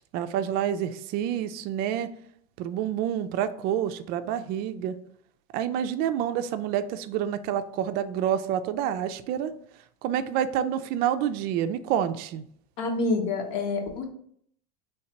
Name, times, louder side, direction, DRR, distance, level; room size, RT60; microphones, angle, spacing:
voice 1, 0.0-2.1 2.6-5.0 5.5-9.5 10.0-12.4, right 10 dB, 50° right, 11 dB, 0.4 m, -28 dB
voice 2, 12.8-14.0, left 3 dB, 65° left, 2 dB, 1.0 m, -27 dB
3.2 x 2.8 x 4.4 m, 0.65 s
supercardioid pair, 130°, 21 cm